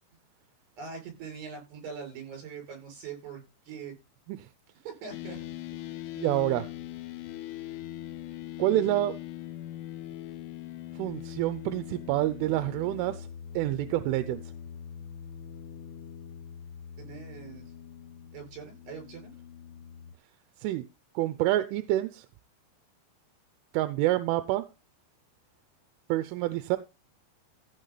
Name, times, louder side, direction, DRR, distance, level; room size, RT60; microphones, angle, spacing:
voice 1, 0.8-3.9 4.8-5.4 17.0-17.6 18.3-19.3, right 6 dB, 60° right, 8.3 m, -42 dB
sound 1, 5.1-20.2, left 11 dB, 85° left, 3.5 m, -42 dB
voice 2, 6.2-6.7 8.6-9.2 11.0-13.3 13.5-14.4 20.6-20.9 21.2-22.3 23.7-24.7 26.1-26.8, right 15 dB, 85° right, 3.2 m, -27 dB
15.5 x 5.9 x 4.0 m
omnidirectional pair, 5.6 m